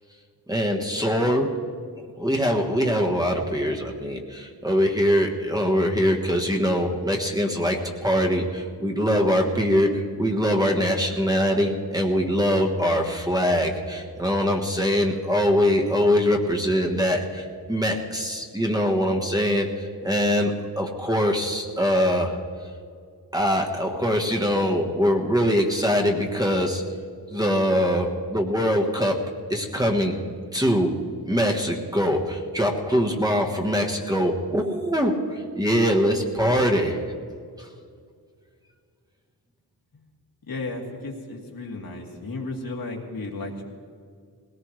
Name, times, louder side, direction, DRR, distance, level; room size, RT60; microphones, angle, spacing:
voice 1, 0.5-1.6 2.2-19.7 20.0-22.3 23.3-26.8 27.3-30.2 30.5-30.9 31.3-37.0, equal, 10° right, 1 dB, 1.3 m, -23 dB
voice 2, 40.5-43.7, left 2 dB, 65° left, 0 dB, 2.2 m, -34 dB
20.5 x 18.0 x 3.2 m, 2.1 s
wide cardioid pair, 130°, 39 cm